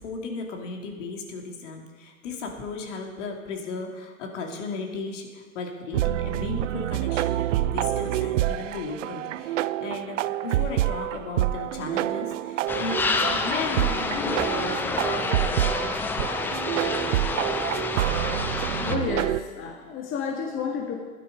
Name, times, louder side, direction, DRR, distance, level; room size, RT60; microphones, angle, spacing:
voice 1, 0.0-15.5, left 3 dB, 60° left, 1 dB, 2.6 m, -35 dB
sound 1, 5.9-19.4, right 14 dB, 65° right, 0.5 m, -27 dB
sound 2, 12.7-19.0, left 4 dB, 5° left, 0.3 m, -28 dB
voice 2, 18.8-21.0, left 6 dB, 30° left, 1 dB, 1.7 m, -30 dB
11.5 x 11.5 x 5.3 m, 1.4 s
hypercardioid pair, 100°, 41 cm